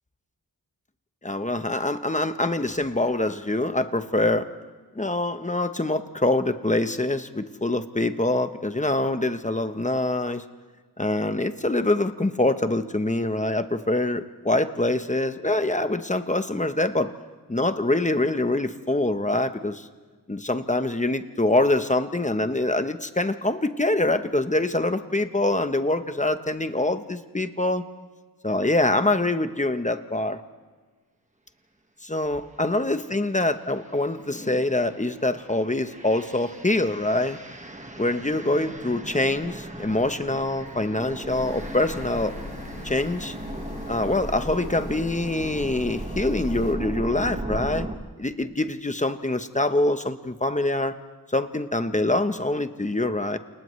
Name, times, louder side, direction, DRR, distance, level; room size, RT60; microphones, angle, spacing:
voice 1, 1.2-4.5 4.9-10.4 11.0-17.1 17.5-19.9 20.3-27.8 28.4-30.4 32.0-37.4 38.0-42.3 42.8-43.3 43.9-47.9 48.2-51.0 51.3-53.4, left 2 dB, 20° left, 9 dB, 0.9 m, -25 dB
sound 1, 32.7-32.9 33.5-48.0, right 1 dB, 20° right, 1.5 m, -37 dB
sound 2, 41.3-46.7, left 3 dB, 80° left, 2.0 m, -40 dB
29.5 x 28.5 x 3.2 m, 1.5 s
wide cardioid pair, 90°, 37 cm